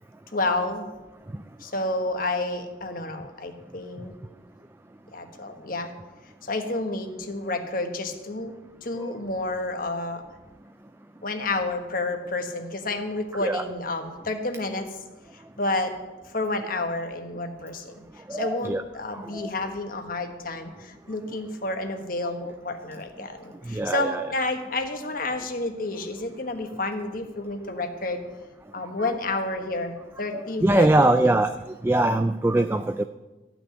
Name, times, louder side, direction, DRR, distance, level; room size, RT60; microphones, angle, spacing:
voice 1, 0.3-0.9 1.6-4.2 5.1-5.9 6.4-8.5 8.8-10.2 11.2-14.9 15.6-15.9 16.3-18.0 18.3-28.2 28.7-31.3, left 2 dB, 45° left, 5 dB, 1.4 m, -30 dB
voice 2, 18.3-18.8 19.1-19.5 23.7-24.2 29.0-29.1 30.3-31.5 31.8-33.0, right 2 dB, 10° right, 9 dB, 0.3 m, -22 dB
14.0 x 6.2 x 9.6 m, 1.1 s
head